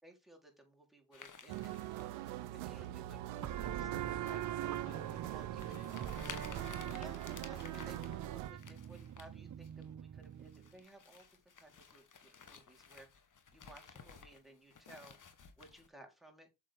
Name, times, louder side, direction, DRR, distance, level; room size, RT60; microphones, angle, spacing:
voice 1, 0.0-2.1 2.5-4.8 5.3-5.8 6.9-13.1 13.5-15.2 15.6-16.5, right 1 dB, ahead, 4.0 m, -58 dB
sound 1, 1.1-2.9 3.3-3.7 4.3-4.5 5.0-5.1 5.5-9.3 9.6-9.8 10.2-15.9, left 6 dB, 40° left, 1.5 m, -55 dB
sound 2, 1.5-8.5, right 14 dB, 85° right, 0.7 m, -43 dB
sound 3, 3.4-10.7, right 9 dB, 40° right, 0.7 m, -44 dB
voice 2, 4.8-7.2, left 5 dB, 75° left, 2.2 m, -61 dB
7.4 x 6.9 x 3.7 m
hypercardioid pair, 50°, 47 cm